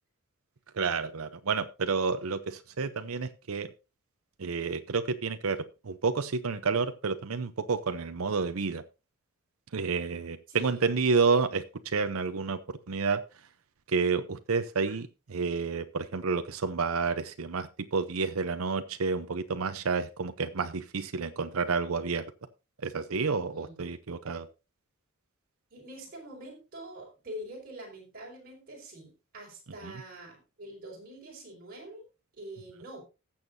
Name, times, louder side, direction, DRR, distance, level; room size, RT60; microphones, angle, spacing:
voice 1, 0.7-3.7 4.4-8.8 9.7-12.6 12.9-13.2 13.9-22.2 22.8-24.5 29.8-29.9, right 4 dB, 90° right, 10 dB, 0.7 m, -30 dB
voice 2, 10.5-10.9 14.9-15.0 23.5-23.8 25.7-32.1 32.3-33.0, right 1 dB, 45° right, -2 dB, 5.2 m, -45 dB
18.5 x 7.2 x 2.7 m, 0.29 s
head